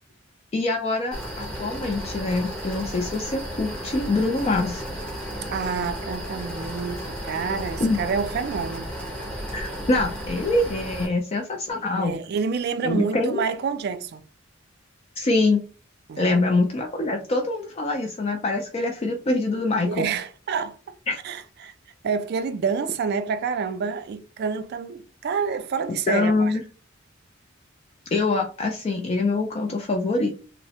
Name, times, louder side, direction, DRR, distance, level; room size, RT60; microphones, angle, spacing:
voice 1, 0.5-4.8 7.8-8.0 9.5-12.2 12.8-13.4 15.2-15.6 16.2-20.1 21.1-21.2 26.1-26.6 28.1-30.3, left 2 dB, 30° left, 0.3 m, -24 dB
sound 1, 1.1-11.1, equal, 5° left, 0.8 m, -34 dB
voice 2, 5.5-8.9 12.0-14.2 16.1-16.4 19.8-20.9 21.2-21.7 22.0-26.5, right 5 dB, 55° right, 0.3 m, -28 dB
3.1 x 2.0 x 2.7 m
head